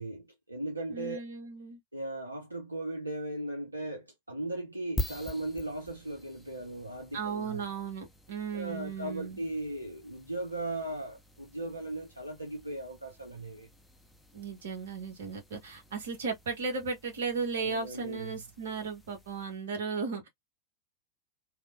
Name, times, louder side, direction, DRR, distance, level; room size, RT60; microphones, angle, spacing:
voice 1, 0.0-1.2 1.9-7.6 8.5-13.7 17.5-18.4, right 1 dB, 85° right, 0.6 m, -37 dB
voice 2, 0.9-1.8 7.1-9.4 14.3-20.3, right 5 dB, 60° right, 1.0 m, -36 dB
sound 1, 5.0-19.7, equal, 5° left, 0.6 m, -46 dB
2.9 x 2.1 x 2.5 m
figure-of-eight pair, 90°, 0 cm